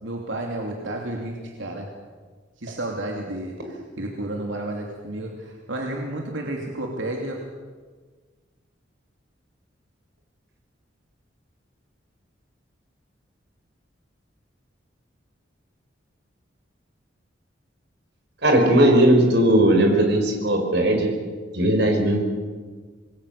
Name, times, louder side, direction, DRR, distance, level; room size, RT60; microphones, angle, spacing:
voice 1, 0.0-1.9 2.6-7.4, right 1 dB, 85° right, 0 dB, 2.9 m, -31 dB
voice 2, 18.4-21.1 21.5-22.2, right 1 dB, 60° right, 3 dB, 5.2 m, -18 dB
27.0 x 21.0 x 6.8 m, 1.5 s
head